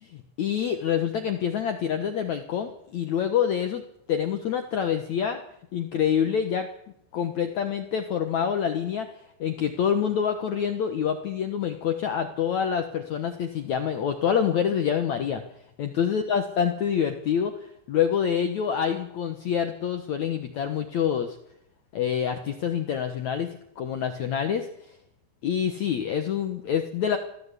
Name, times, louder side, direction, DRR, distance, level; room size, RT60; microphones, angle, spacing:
voice 1, 0.0-3.8 4.1-5.4 5.7-6.7 7.1-9.1 9.4-15.4 15.8-17.6 17.9-21.4 21.9-24.7 25.4-27.2, left 8 dB, 80° left, 7 dB, 1.6 m, -26 dB
24.0 x 15.0 x 8.3 m, 0.77 s
omnidirectional pair, 5.2 m